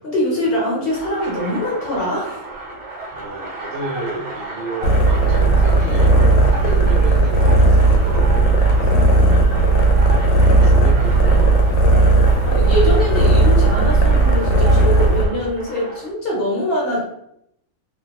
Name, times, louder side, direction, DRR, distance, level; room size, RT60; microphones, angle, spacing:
voice 1, 0.0-2.4 9.1-9.9 12.4-17.0, left 1 dB, 50° left, -5 dB, 0.9 m, -23 dB
sound 1, 0.9-16.1, right 2 dB, 75° right, 1.2 m, -32 dB
voice 2, 3.1-9.2 9.9-11.9, right 2 dB, 55° right, -5 dB, 0.9 m, -32 dB
sound 2, 4.8-15.2, right 2 dB, 85° left, 1.0 m, -14 dB
2.8 x 2.1 x 2.8 m, 0.76 s
omnidirectional pair, 1.4 m